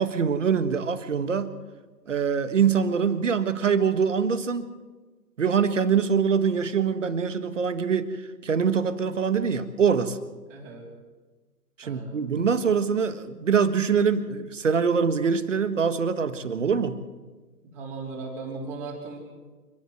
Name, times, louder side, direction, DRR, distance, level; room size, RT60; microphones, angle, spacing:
voice 1, 0.0-1.5 2.1-4.7 5.4-8.2 8.4-10.2 11.8-17.0, right 6 dB, 50° right, 12 dB, 1.6 m, -24 dB
voice 2, 10.5-10.9 11.8-12.2 17.6-19.2, right 3 dB, 20° right, -1 dB, 3.9 m, -38 dB
29.0 x 11.5 x 8.0 m, 1.3 s
figure-of-eight pair, 140°, 49 cm